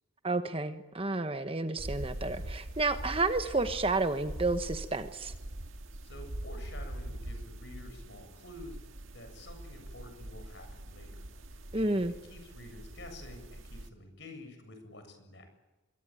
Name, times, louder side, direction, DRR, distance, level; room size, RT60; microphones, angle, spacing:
voice 1, 0.2-5.3 11.7-12.1, right 3 dB, 30° right, 9 dB, 1.2 m, -31 dB
sound 1, 1.8-13.9, right 1 dB, 85° right, 1.7 m, -43 dB
voice 2, 6.0-8.8 9.1-11.2 11.8-12.0 12.3-15.5, left 1 dB, 60° left, 7 dB, 7.6 m, -49 dB
25.5 x 23.5 x 9.0 m, 1.1 s
head